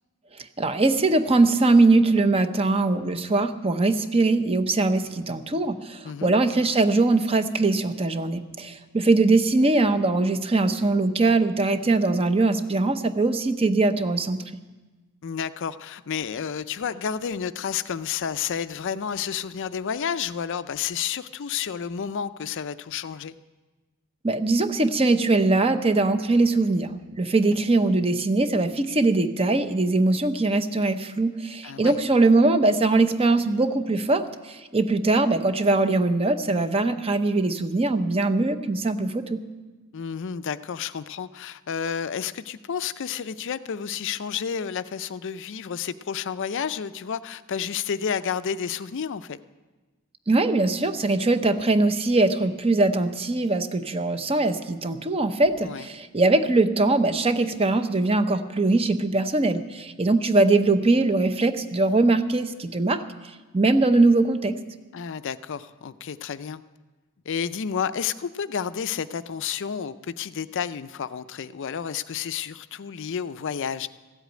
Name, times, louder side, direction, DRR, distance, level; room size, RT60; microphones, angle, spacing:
voice 1, 0.6-14.4 24.2-39.4 50.3-63.0 63.5-64.6, right 2 dB, 25° right, 10 dB, 0.7 m, -21 dB
voice 2, 15.2-23.4 31.6-32.0 39.9-49.4 55.6-55.9 64.9-66.6 67.3-73.9, left 7 dB, 55° left, 14 dB, 0.4 m, -31 dB
15.0 x 8.2 x 9.1 m, 1.2 s
head